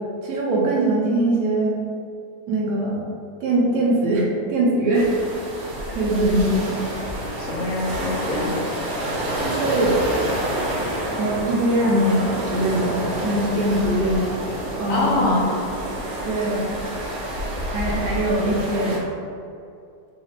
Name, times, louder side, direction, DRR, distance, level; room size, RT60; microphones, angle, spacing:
voice 1, 0.2-1.7 2.5-3.1 3.4-5.1 5.9-6.6 9.4-10.0 11.2-14.2 14.8-15.3 16.2-16.6 17.7-19.0, right 1 dB, 65° right, -4 dB, 1.1 m, -22 dB
sound 1, 4.9-19.0, right 1 dB, 85° right, 1.5 m, -28 dB
voice 2, 6.1-6.6 7.4-8.6 14.9-15.5, left 2 dB, 60° left, -4 dB, 1.0 m, -24 dB
4.2 x 2.0 x 4.0 m, 2.5 s
omnidirectional pair, 2.0 m